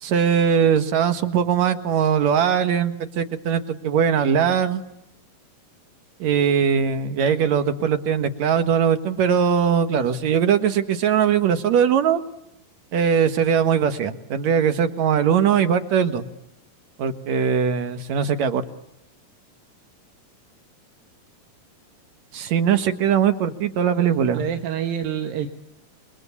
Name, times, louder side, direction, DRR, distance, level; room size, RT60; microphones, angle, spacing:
voice 1, 0.0-4.8 6.2-12.2 12.9-16.2 17.0-18.6 22.3-24.4, right 7 dB, 55° right, 10 dB, 2.6 m, -20 dB
voice 2, 23.9-25.5, right 9 dB, 75° right, 7 dB, 3.1 m, -28 dB
27.5 x 24.5 x 8.4 m, 0.80 s
omnidirectional pair, 4.1 m